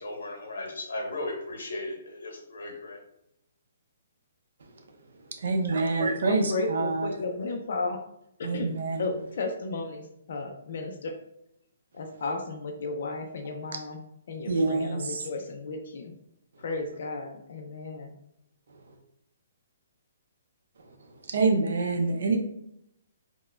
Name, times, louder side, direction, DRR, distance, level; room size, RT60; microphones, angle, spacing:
voice 1, 0.0-3.0, left 2 dB, 85° left, 1 dB, 0.8 m, -36 dB
voice 2, 5.4-7.1 8.4-9.1 14.5-15.3 21.3-22.4, right 3 dB, 65° right, 3 dB, 0.5 m, -26 dB
voice 3, 6.2-8.0 8.4-8.7 9.0-10.0 10.3-11.2 11.9-14.0 14.3-16.1 16.6-18.2, left 3 dB, 50° left, 3 dB, 0.4 m, -34 dB
4.4 x 2.1 x 2.2 m, 0.77 s
hypercardioid pair, 175°, 0 cm